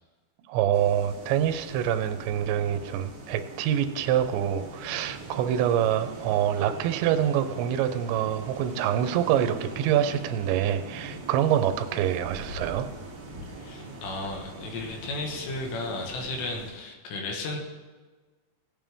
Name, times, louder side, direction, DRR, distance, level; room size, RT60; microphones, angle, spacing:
voice 1, 0.5-12.9, right 10 dB, 85° right, 10 dB, 3.0 m, -26 dB
sound 1, 0.7-16.7, right 2 dB, 65° right, 1.1 m, -42 dB
voice 2, 13.6-17.6, left 2 dB, 75° left, 1 dB, 3.5 m, -34 dB
18.0 x 9.2 x 3.5 m, 1.4 s
omnidirectional pair, 5.1 m